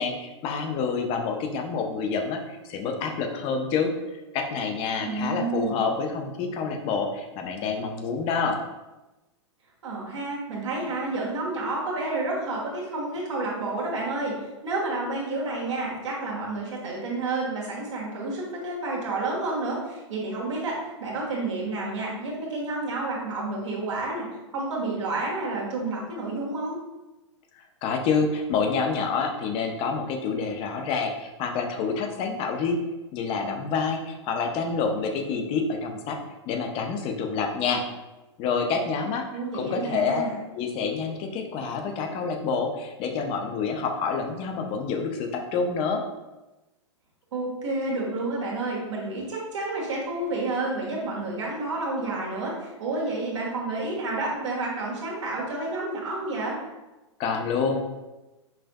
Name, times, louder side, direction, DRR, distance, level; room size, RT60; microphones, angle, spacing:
voice 1, 0.0-3.9 4.3-8.6 27.8-32.8 33.1-36.2 36.5-37.8 38.4-40.2 40.5-46.0 57.2-57.8, left 5 dB, 35° left, 4 dB, 0.6 m, -27 dB
voice 2, 5.0-5.9 9.8-24.3 24.5-26.8 39.3-40.3 47.3-56.6, right 2 dB, 75° right, -3 dB, 1.3 m, -30 dB
5.5 x 2.5 x 2.2 m, 1.1 s
hypercardioid pair, 110°, 16 cm